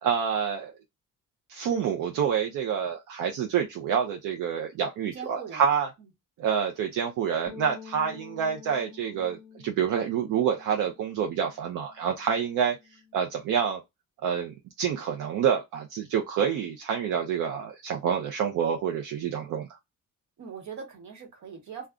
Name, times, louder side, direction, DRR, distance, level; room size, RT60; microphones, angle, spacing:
voice 1, 0.0-0.7 1.5-5.9 6.4-12.8 13.1-13.8 14.2-19.7, right 7 dB, 80° right, 0.5 m, -27 dB
voice 2, 5.1-5.7 6.0-6.1 20.4-21.9, right 6 dB, 65° right, 1.2 m, -41 dB
sound 1, 7.5-13.7, left 7 dB, 15° left, 0.6 m, -50 dB
2.3 x 2.2 x 3.6 m
cardioid pair, 170°, 31 cm